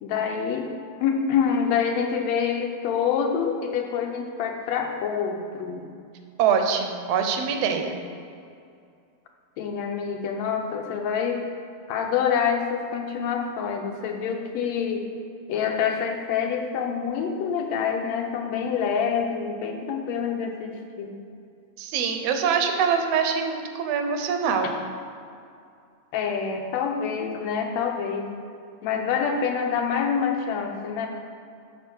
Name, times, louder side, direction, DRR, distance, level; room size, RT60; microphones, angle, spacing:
voice 1, 0.0-0.7 1.0-5.9 9.6-11.4 11.9-15.1 15.5-21.1 26.1-28.3 28.8-31.1, left 7 dB, 75° left, 3 dB, 1.8 m, -26 dB
voice 2, 6.4-7.9 21.8-24.7, right 6 dB, 75° right, 5 dB, 1.6 m, -24 dB
6.8 x 5.6 x 6.2 m, 2.4 s
omnidirectional pair, 3.3 m